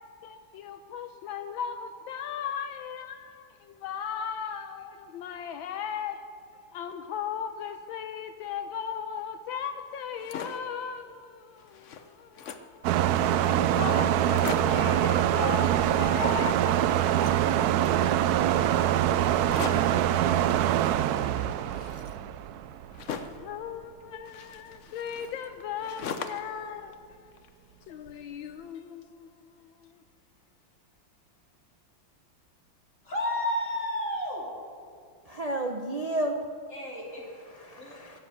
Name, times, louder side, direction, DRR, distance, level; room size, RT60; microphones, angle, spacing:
voice 1, 0.2-6.2 6.7-12.9 13.5-16.6 23.4-26.9 27.9-29.9, left 8 dB, 75° left, 8 dB, 1.4 m, -38 dB
sound 1, 10.0-10.7 11.2-11.3 11.6-12.8 13.4-13.5 13.8-13.9 14.2-14.9 15.6-16.4 16.7-18.0 19.4-20.0 21.0-23.5 24.3-26.6 26.9-27.8, left 6 dB, 60° left, 0.8 m, -41 dB
sound 2, 12.8-23.0, right 11 dB, 80° right, 0.8 m, -24 dB
voice 2, 33.0-34.6 36.7-37.3 37.8-38.0, left 1 dB, 40° left, -3 dB, 3.7 m, -31 dB
voice 3, 35.2-36.4 37.4-38.2, right 1 dB, 65° right, 3 dB, 0.3 m, -32 dB
22.5 x 7.5 x 8.0 m, 2.3 s
omnidirectional pair, 2.2 m